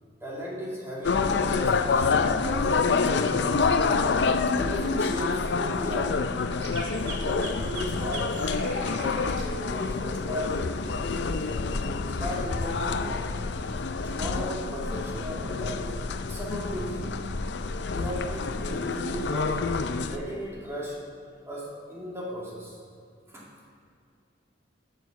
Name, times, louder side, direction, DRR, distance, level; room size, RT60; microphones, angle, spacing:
voice 1, 0.2-3.7 4.6-6.2 7.0-13.3 14.0-17.2 17.9-21.0 21.5-22.8 23.3-23.5, equal, 15° right, -5 dB, 2.3 m, -36 dB
sound 1, 1.0-20.2, left 4 dB, 70° left, 0.5 m, -27 dB
sound 2, 6.6-9.4 11.8-12.3, right 4 dB, 90° right, 2.0 m, -41 dB
9.1 x 6.5 x 6.9 m, 2.3 s
head